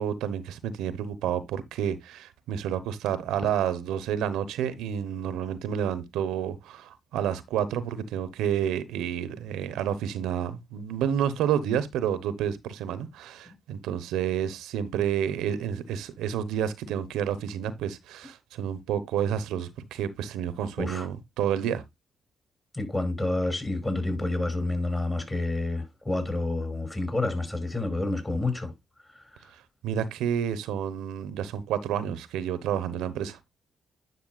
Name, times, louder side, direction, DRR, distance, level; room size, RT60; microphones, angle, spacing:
voice 1, 0.0-21.8 29.8-33.4, right 9 dB, 80° right, 0.8 m, -30 dB
voice 2, 22.7-28.7 29.1-29.4, left 2 dB, 25° left, 4.9 m, -29 dB
10.5 x 5.8 x 2.3 m
supercardioid pair, 55°, 0 cm